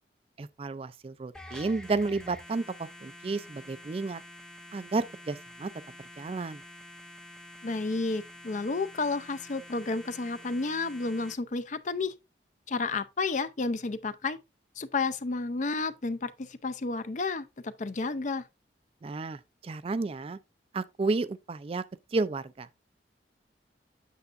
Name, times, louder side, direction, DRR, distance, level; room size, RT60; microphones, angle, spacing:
voice 1, 0.4-4.2 4.7-5.7 6.2-6.6 19.0-20.4 20.7-21.8 22.1-22.7, right 3 dB, 30° right, 0.3 m, -32 dB
sound 1, 1.3-11.3, left 1 dB, 5° left, 0.7 m, -48 dB
voice 2, 7.6-12.1 12.7-14.4 14.8-18.4, left 3 dB, 45° left, 0.5 m, -31 dB
8.2 x 6.7 x 2.5 m
head